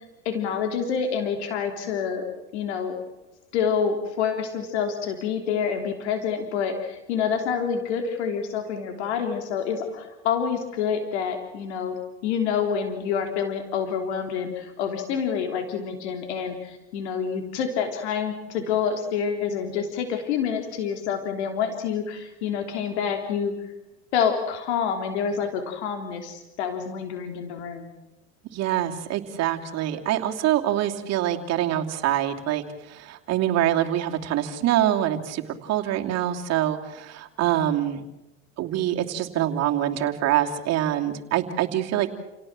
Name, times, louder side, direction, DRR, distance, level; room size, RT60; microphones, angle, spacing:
voice 1, 0.2-2.3 2.5-2.9 3.5-11.9 12.2-23.5 24.1-27.9, left 7 dB, 85° left, 5 dB, 3.4 m, -27 dB
voice 2, 28.5-38.0 38.6-42.1, right 12 dB, 50° right, 4 dB, 2.8 m, -25 dB
29.0 x 17.5 x 7.5 m, 1.0 s
supercardioid pair, 110°, 33 cm